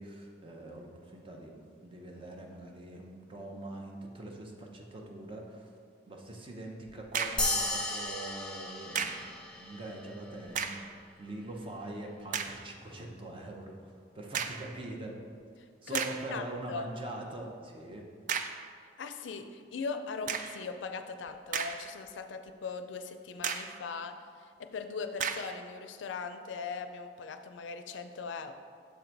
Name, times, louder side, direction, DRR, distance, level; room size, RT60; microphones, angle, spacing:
voice 1, 0.0-5.7 6.1-15.2 15.8-18.1, right 1 dB, 30° right, 1 dB, 0.7 m, -43 dB
sound 1, 6.9-7.6 9.0-9.3 10.5-10.9 11.5-11.6 12.3-12.6 14.3-14.7 15.4-15.5 15.9-16.3 18.3-18.7 20.3-20.6 21.3-22.1 22.5-22.6 23.4-23.8 25.2-25.6, right 7 dB, 45° right, 0.3 m, -35 dB
sound 2, 7.4-10.1, left 2 dB, 5° left, 0.7 m, -34 dB
voice 2, 16.3-16.9 19.0-24.2 24.6-28.5, left 4 dB, 80° left, 8 dB, 0.4 m, -39 dB
6.9 x 3.9 x 4.5 m, 2.1 s
head